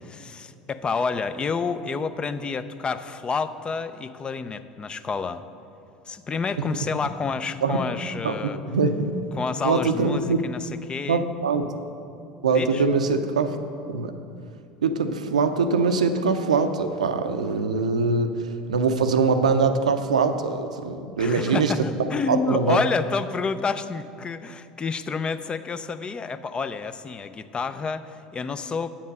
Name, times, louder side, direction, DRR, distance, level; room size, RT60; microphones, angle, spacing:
voice 1, 0.0-5.4 6.1-8.6 9.3-11.3 12.5-12.9 21.2-28.9, left 5 dB, 25° left, 12 dB, 0.5 m, -29 dB
voice 2, 8.2-9.1 9.6-10.4 11.1-11.7 12.4-13.6 13.9-14.2 14.8-18.3 18.7-21.7 22.0-22.8, right 4 dB, 85° right, 8 dB, 0.5 m, -23 dB
8.6 x 7.3 x 5.4 m, 2.6 s
hypercardioid pair, 75°, 4 cm